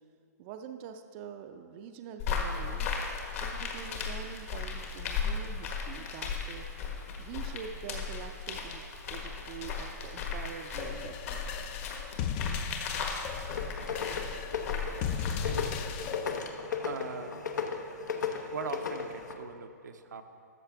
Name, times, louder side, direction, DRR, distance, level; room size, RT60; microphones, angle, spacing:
voice 1, 0.4-2.9 3.4-6.7 7.2-11.7, right 7 dB, 35° right, 6 dB, 0.4 m, -45 dB
sound 1, 2.2-16.1, left 5 dB, 55° left, 1.4 m, -36 dB
sound 2, 10.8-16.4, left 7 dB, 35° left, 0.4 m, -37 dB
sound 3, 13.5-19.3, left 6 dB, 80° left, 0.9 m, -36 dB
voice 2, 15.0-15.8 16.8-17.5 18.5-20.2, right 6 dB, 80° right, 6 dB, 0.7 m, -41 dB
13.0 x 6.7 x 3.4 m, 2.4 s
hypercardioid pair, 130°, 9 cm